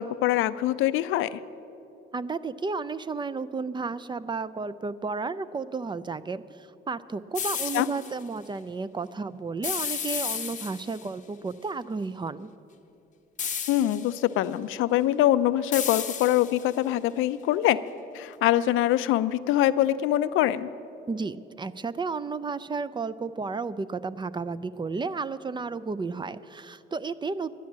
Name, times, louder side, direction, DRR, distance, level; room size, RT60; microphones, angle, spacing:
voice 1, 0.0-1.4 7.7-7.9 13.7-17.8 18.1-20.7, left 13 dB, 90° left, 14 dB, 0.4 m, -24 dB
voice 2, 2.1-12.5 21.1-27.5, right 4 dB, 25° right, 15 dB, 0.4 m, -32 dB
sound 1, 7.3-8.1 9.6-11.1 13.4-14.2 15.7-16.8, left 7 dB, 40° left, 0.7 m, -32 dB
11.5 x 10.5 x 7.3 m, 2.9 s
cardioid pair, 90°, 20 cm